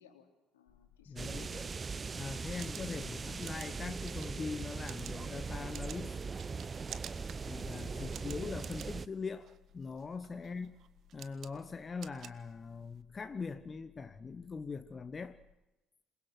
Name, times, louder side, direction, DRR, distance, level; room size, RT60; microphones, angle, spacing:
voice 1, 0.0-1.8 2.4-3.6 7.9-8.4 10.4-10.7, left 8 dB, 75° left, 3.5 m, -62 dB
sound 1, 0.7-15.5, left 9 dB, 55° left, 1.7 m, -65 dB
voice 2, 1.1-1.6 2.1-6.2 7.4-10.7 11.1-15.4, left 4 dB, 30° left, 1.2 m, -42 dB
sound 2, 1.2-9.1, right 4 dB, 30° right, 0.7 m, -40 dB
sound 3, 2.6-13.0, right 9 dB, 50° right, 1.4 m, -52 dB
27.5 x 22.0 x 6.2 m
figure-of-eight pair, 55°, 0 cm